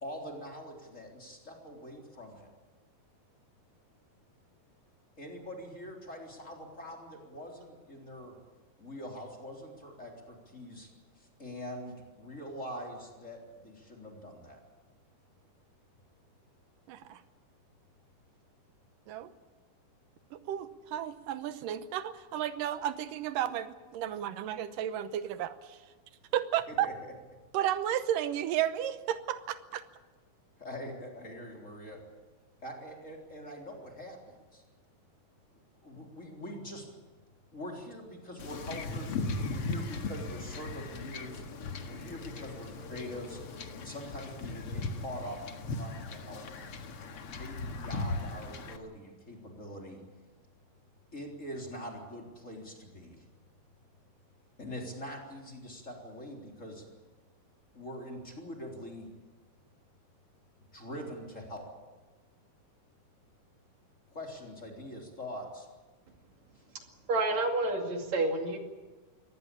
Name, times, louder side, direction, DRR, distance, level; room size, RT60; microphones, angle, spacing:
voice 1, 0.0-2.5 5.2-8.4 8.8-10.9 11.2-14.6 26.7-27.1 30.6-32.0 32.6-34.6 35.8-36.9 37.5-41.4 41.8-43.4 43.7-46.5 47.3-50.0 51.1-53.3 54.6-56.9 57.7-59.1 60.7-61.7 64.1-65.7, equal, 20° left, 0 dB, 3.9 m, -44 dB
voice 2, 16.9-17.2 19.1-19.3 20.3-25.8 26.3-26.9 27.5-29.8, right 11 dB, 90° right, 12 dB, 2.6 m, -33 dB
Wind / Ocean / Boat Water vehicle, 38.4-48.8, left 3 dB, 50° left, 2.3 m, -38 dB
voice 3, 67.1-68.6, right 2 dB, 60° right, 3 dB, 3.6 m, -29 dB
23.5 x 18.5 x 8.6 m, 1.2 s
omnidirectional pair, 3.7 m